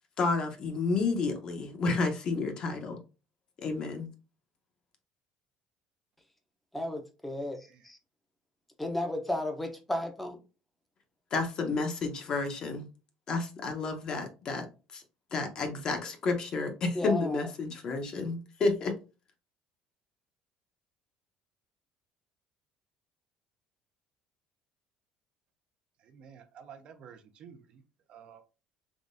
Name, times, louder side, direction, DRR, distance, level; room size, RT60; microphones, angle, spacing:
voice 1, 0.2-3.0 3.6-4.1 11.3-12.9 13.3-14.7 14.9-15.0 15.3-18.9, left 3 dB, 40° left, 0.8 m, -30 dB
voice 2, 6.7-8.0 8.8-10.4 16.9-17.5, left 1 dB, 5° left, 0.7 m, -34 dB
voice 3, 26.0-27.8 28.1-28.4, right 7 dB, 50° right, 0.5 m, -51 dB
3.6 x 3.1 x 2.6 m
cardioid pair, 145°, 2 cm